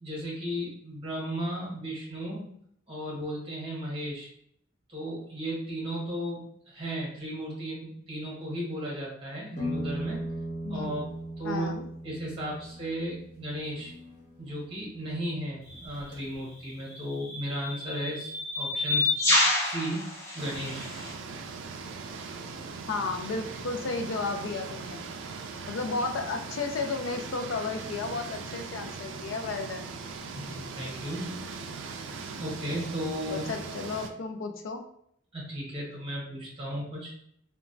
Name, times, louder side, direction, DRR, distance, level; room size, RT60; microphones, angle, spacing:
voice 1, 0.0-2.5 2.9-4.3 4.9-10.2 10.7-11.0 11.4-11.8 12.0-13.9 14.4-19.1 19.4-20.9 30.3-31.3 32.4-33.5 35.3-37.1, equal, 30° right, -3 dB, 1.0 m, -35 dB
sound 1, 9.6-15.2 15.7-16.6, equal, 40° left, 1.1 m, -38 dB
voice 2, 10.6-11.0 11.4-11.9 22.9-25.0 25.7-30.0 33.3-34.8, left 3 dB, 75° left, 5 dB, 0.4 m, -33 dB
sound 2, 15.7-15.9 16.9-21.1, left 2 dB, 15° left, 0.6 m, -28 dB
sound 3, 20.4-34.1, right 4 dB, 70° right, 0.3 m, -40 dB
2.9 x 2.2 x 2.5 m, 0.69 s
head